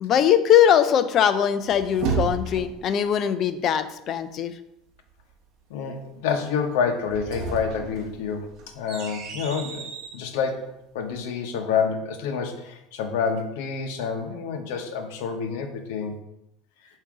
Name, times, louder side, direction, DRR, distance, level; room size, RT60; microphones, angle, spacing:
voice 1, 0.0-4.6, left 9 dB, 30° left, 11 dB, 0.4 m, -21 dB
sound 1, 1.4-2.9 6.9-10.2, right 5 dB, 45° right, 1.2 m, -32 dB
voice 2, 5.7-16.2, left 6 dB, 85° left, 6 dB, 0.9 m, -28 dB
7.5 x 2.7 x 4.8 m, 0.83 s
cardioid pair, 180°, 0 cm